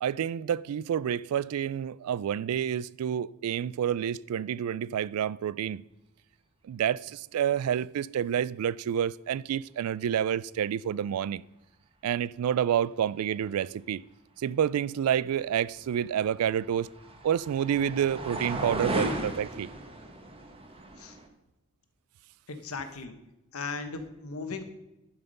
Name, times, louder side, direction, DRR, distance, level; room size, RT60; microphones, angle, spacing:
voice 1, 0.0-5.8 6.7-11.4 12.0-14.0 14.4-16.9 17.2-19.7, right 9 dB, 85° right, 0.3 m, -29 dB
sound 1, 16.0-21.3, right 1 dB, 25° right, 1.1 m, -36 dB
voice 2, 22.5-23.1 23.5-24.6, left 4 dB, 75° left, 1.1 m, -37 dB
11.0 x 5.8 x 5.3 m
head